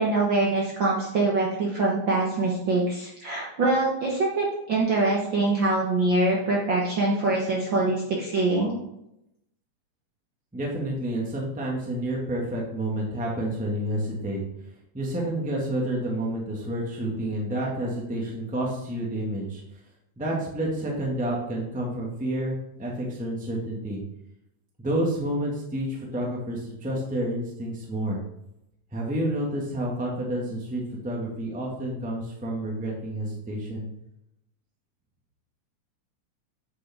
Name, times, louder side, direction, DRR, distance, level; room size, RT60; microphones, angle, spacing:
voice 1, 0.0-8.8, right 2 dB, 50° right, -3 dB, 1.5 m, -24 dB
voice 2, 10.5-14.4 14.9-19.6 20.2-24.0 24.8-28.2 28.9-33.9, right 1 dB, 5° right, -2 dB, 1.1 m, -29 dB
9.2 x 6.7 x 3.6 m, 0.82 s
omnidirectional pair, 3.5 m